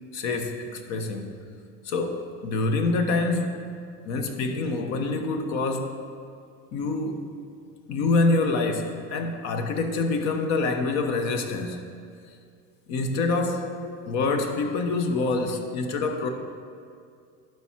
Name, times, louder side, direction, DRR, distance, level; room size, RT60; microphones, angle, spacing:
voice 1, 0.1-1.3 1.8-3.6 4.0-5.9 6.7-7.3 7.9-11.9 12.9-16.3, left 3 dB, 55° left, 6 dB, 1.0 m, -26 dB
12.0 x 4.7 x 4.5 m, 2.3 s
supercardioid pair, 110°, 33 cm